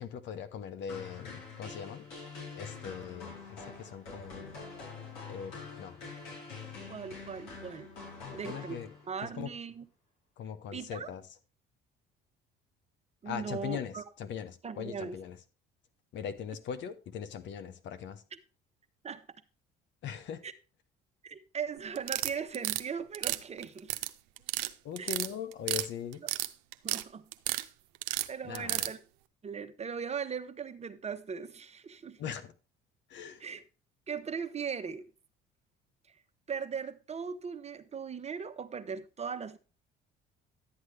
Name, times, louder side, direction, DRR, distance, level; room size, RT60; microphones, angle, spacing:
voice 1, 0.0-2.1 2.6-4.6 5.2-6.0 8.2-8.9 9.2-9.5 10.4-11.3 13.2-15.4 16.1-18.2 20.0-20.4 24.8-26.2 28.4-28.9 32.2-32.5 33.1-33.4, left 8 dB, 60° left, 1.0 m, -40 dB
sound 1, 0.9-9.3, left 4 dB, 80° left, 5.2 m, -45 dB
voice 2, 6.9-7.9 8.3-8.8 9.1-9.8 10.7-11.1 13.2-14.0 14.6-15.2 19.0-19.3 20.4-20.5 21.2-23.9 25.0-25.1 26.8-27.2 28.3-29.0 29.4-32.2 33.4-33.6 34.1-35.0 36.5-39.6, right 6 dB, 30° right, 0.9 m, -38 dB
sound 2, 22.0-22.8 23.1-24.1 24.4-24.7 25.0-25.9 26.1-27.0 27.3-27.6 28.0-28.9, right 18 dB, 90° right, 0.6 m, -32 dB
11.5 x 8.0 x 3.3 m
supercardioid pair, 75°, 21 cm